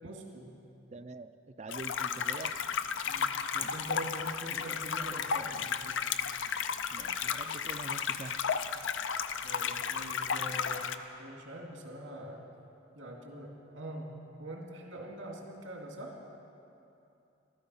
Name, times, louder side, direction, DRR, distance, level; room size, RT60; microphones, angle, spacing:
voice 1, 0.0-0.5 3.1-6.0 9.4-10.9 11.2-12.4 12.9-16.2, right 1 dB, 80° right, 0 dB, 2.3 m, -44 dB
voice 2, 0.9-1.3 1.6-2.6 3.6-3.7 4.5-5.5 6.9-8.3, right 3 dB, 35° right, 11 dB, 0.4 m, -45 dB
sound 1, 1.7-11.0, left 7 dB, 75° left, 0.5 m, -33 dB
13.5 x 13.0 x 5.5 m, 2.7 s
head